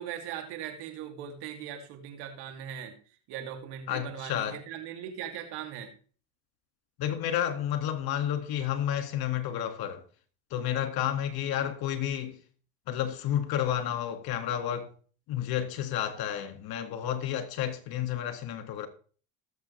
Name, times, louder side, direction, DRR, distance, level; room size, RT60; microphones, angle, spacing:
voice 1, 0.0-2.9 3.3-5.9, right 9 dB, 75° right, 2.7 m, -39 dB
voice 2, 3.9-4.6 7.0-10.0 10.5-12.4 12.9-14.9 15.3-18.9, left 10 dB, 65° left, 2.1 m, -31 dB
18.5 x 7.4 x 3.3 m
supercardioid pair, 80°, 40 cm